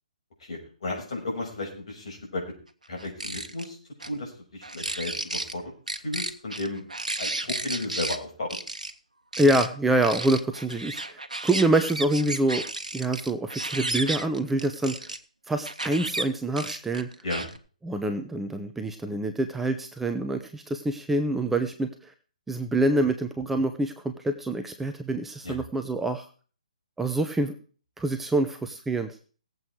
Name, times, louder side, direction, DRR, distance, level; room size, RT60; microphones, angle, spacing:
voice 1, 0.4-2.4 2.9-3.8 4.0-5.7 6.0-6.8 7.2-8.6 17.2-17.5 25.4-25.6, left 2 dB, 55° left, 1 dB, 6.1 m, -34 dB
sound 1, 3.0-3.7 4.0-4.1 4.6-5.5 5.9-8.2 8.5-8.9 9.3-9.7 10.0-15.2 15.6-16.2 16.6-17.6, right 2 dB, 85° right, 1.2 m, -33 dB
voice 2, 9.4-12.6 12.9-15.1 15.5-17.1 17.8-22.1 22.5-26.2 27.0-27.6 28.0-29.1, right 2 dB, 5° right, 7 dB, 0.8 m, -26 dB
18.0 x 8.0 x 4.8 m, 0.40 s
figure-of-eight pair, 135°, 4 cm